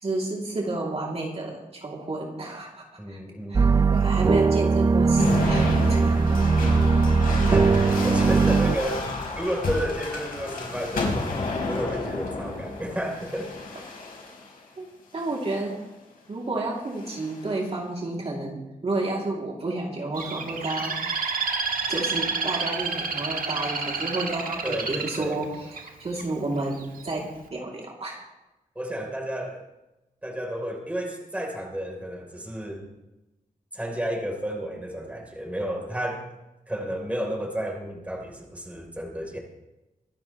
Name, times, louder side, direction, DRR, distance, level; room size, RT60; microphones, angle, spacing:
voice 1, 0.0-3.2 3.5-6.2 14.8-15.8 16.3-21.3 21.9-28.2, right 2 dB, 45° right, -2 dB, 2.7 m, -31 dB
voice 2, 3.0-3.7 7.5-7.8 8.0-11.3 11.7-13.5 24.6-25.4 28.7-29.6 30.2-32.9 33.7-36.2 36.7-39.4, equal, 10° right, 0 dB, 3.4 m, -32 dB
sound 1, 3.5-8.8, right 4 dB, 30° right, 0.3 m, -20 dB
sound 2, 5.2-14.5 15.2-15.8 16.9-17.5, left 3 dB, 90° left, 4.5 m, -31 dB
Bird, 20.2-26.2 26.8-27.2, right 4 dB, 80° right, 1.6 m, -29 dB
24.5 x 12.0 x 3.1 m, 1.0 s
wide cardioid pair, 110°, 14 cm